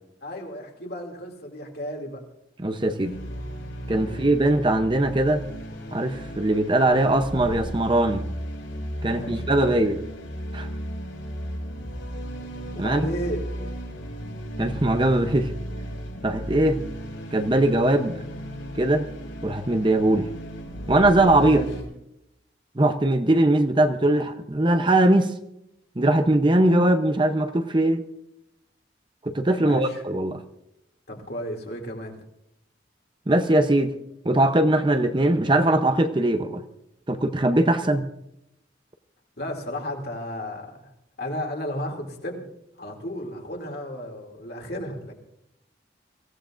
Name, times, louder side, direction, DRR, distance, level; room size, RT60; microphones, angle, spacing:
voice 1, 0.2-2.2 4.0-4.3 9.1-10.0 12.7-13.4 21.4-21.7 29.6-30.0 31.1-32.1 39.4-40.9 41.2-42.5 42.8-45.1, equal, 55° left, 2 dB, 2.7 m, -33 dB
voice 2, 2.6-3.1 3.9-5.4 5.9-8.2 9.0-10.0 10.5-10.7 12.8-13.1 14.6-15.5 16.2-16.8 17.3-18.2 18.8-19.1 19.4-20.3 20.9-21.6 22.8-25.3 26.0-28.0 29.2-30.4 33.3-33.9 34.2-36.6 37.1-38.1, right 1 dB, 25° right, 8 dB, 0.7 m, -21 dB
sound 1, 3.0-21.8, equal, 85° left, 5.8 m, -35 dB
24.0 x 16.0 x 2.5 m, 0.83 s
head